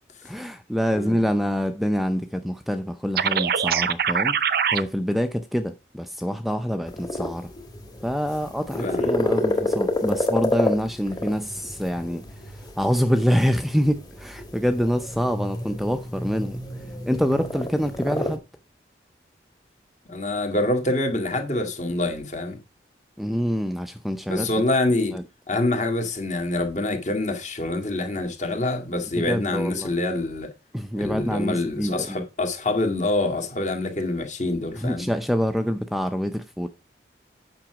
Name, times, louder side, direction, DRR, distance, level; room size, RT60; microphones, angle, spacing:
voice 1, 0.2-4.4 4.7-7.5 8.0-18.4 23.2-24.5 25.1-25.2 29.2-29.9 30.7-32.2 34.7-36.7, equal, ahead, 0.5 m, -26 dB
sound 1, 3.2-4.8, right 7 dB, 55° right, 0.6 m, -22 dB
sound 2, 6.9-18.4, left 1 dB, 20° left, 1.6 m, -29 dB
voice 2, 8.8-9.4 20.1-22.6 24.3-25.1 25.5-30.5 31.0-35.1, left 2 dB, 40° left, 2.0 m, -26 dB
9.0 x 5.9 x 4.8 m
head